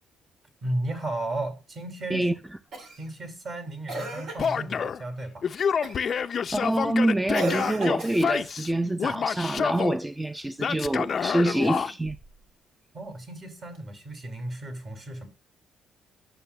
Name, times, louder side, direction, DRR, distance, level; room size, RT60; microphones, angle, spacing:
voice 1, 0.6-2.3 2.8-5.5 12.9-15.3, right 1 dB, 50° right, 2.7 m, -34 dB
Cough, 2.7-3.1 3.9-4.6 5.8-6.1 7.3-8.4 11.5-12.3 13.7-13.8, right 1 dB, 80° right, 2.5 m, -35 dB
Male speech man speaking / Yell, 4.4-5.0 5.4-8.7 9.0-10.0 10.6-11.9, left 7 dB, 50° left, 0.4 m, -28 dB
voice 2, 6.5-12.2, right 1 dB, 10° right, 0.4 m, -26 dB
11.0 x 6.8 x 2.3 m
cardioid pair, 90°, 0 cm